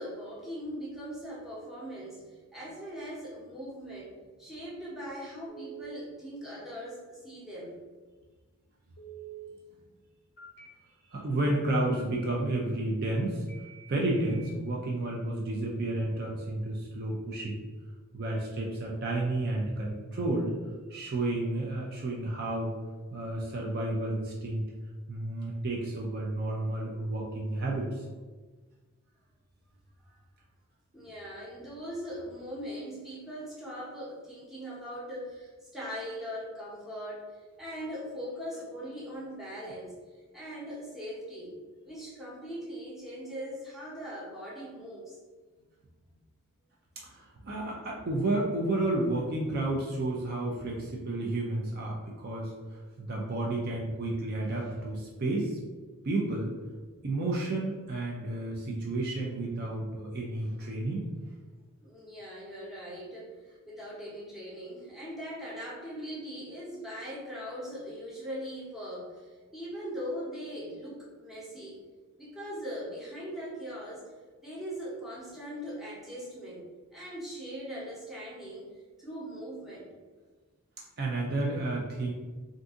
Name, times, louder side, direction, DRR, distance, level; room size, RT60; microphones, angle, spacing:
voice 1, 0.0-4.1 4.4-7.7 30.9-41.5 41.8-45.2 61.8-71.8 72.2-74.1 74.4-76.6 76.9-78.7 79.0-79.9, equal, ahead, -7 dB, 0.8 m, -40 dB
Telephone, 5.5-6.0 9.0-9.5 10.4-10.7 11.9-12.2 13.5-14.5, right 9 dB, 50° left, 0.6 m, -47 dB
voice 2, 11.1-13.4 13.9-17.6 18.1-20.5 20.9-22.8 23.1-24.6 25.1-28.1 47.0-55.6 56.0-56.5 57.0-61.1 81.0-82.1, right 2 dB, 45° right, -2 dB, 0.4 m, -31 dB
2.6 x 2.6 x 3.6 m, 1.4 s
head